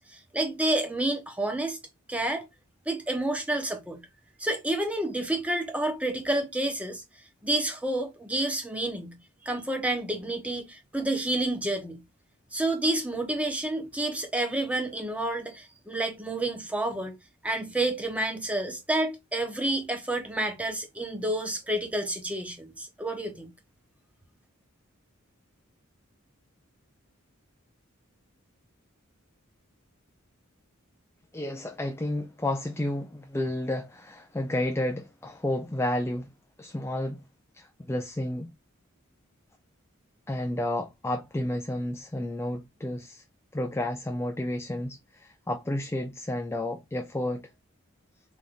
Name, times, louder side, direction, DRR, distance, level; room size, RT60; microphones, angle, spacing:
voice 1, 0.0-1.8 2.1-2.5 2.9-4.0 4.4-7.0 7.4-9.2 9.4-12.0 12.5-17.2 17.4-23.5, right 1 dB, 5° right, 1.0 m, -29 dB
voice 2, 31.3-36.3 36.6-37.2 37.5-38.5 40.3-43.2 43.5-47.5, left 1 dB, 10° left, 0.4 m, -31 dB
3.7 x 3.6 x 3.7 m
head